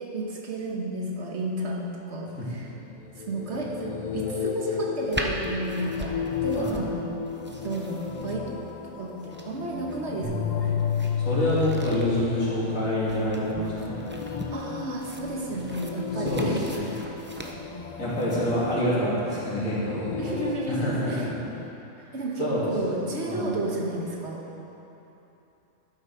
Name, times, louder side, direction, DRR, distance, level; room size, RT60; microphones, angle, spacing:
voice 1, 0.0-2.7 3.2-6.1 6.4-7.0 7.4-8.6 8.9-10.8 14.5-16.6 17.0-17.2 20.2-21.3 22.0-24.4, right 2 dB, 60° right, -2 dB, 1.4 m, -32 dB
sound 1, 2.9-21.7, left 6 dB, 65° left, 0.4 m, -35 dB
sound 2, 5.1-18.4, right 1 dB, 15° right, 0.3 m, -40 dB
sound 3, 10.2-12.7, left 7 dB, ahead, 2.3 m, -28 dB
voice 2, 11.2-14.0 16.2-16.8 18.0-20.1 20.7-21.3 22.4-22.7 23.2-23.5, equal, 85° left, -8 dB, 3.0 m, -27 dB
12.5 x 7.3 x 4.7 m, 3.0 s
omnidirectional pair, 1.3 m